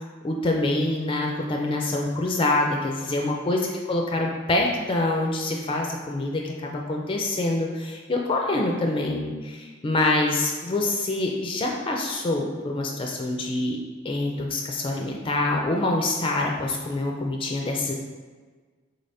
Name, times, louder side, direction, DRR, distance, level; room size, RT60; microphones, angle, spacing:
voice 1, 0.2-13.8 14.0-17.9, left 2 dB, 25° left, 0 dB, 0.4 m, -26 dB
4.1 x 3.3 x 2.6 m, 1.4 s
head